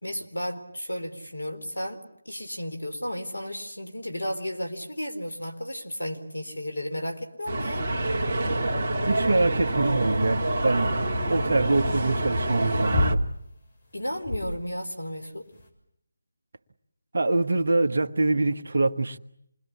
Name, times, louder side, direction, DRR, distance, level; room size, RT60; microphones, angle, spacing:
voice 1, 0.0-7.9 13.9-15.5, equal, 75° left, 4.3 m, -33 dB
sound 1, 7.5-13.1, right 1 dB, 35° right, 2.1 m, -27 dB
voice 2, 9.1-11.0 11.3-13.2 17.1-19.2, right 2 dB, 55° right, 1.3 m, -24 dB
sound 2, 10.1-15.7, left 1 dB, 45° left, 6.7 m, -31 dB
27.5 x 22.0 x 8.5 m
figure-of-eight pair, 155°, 0 cm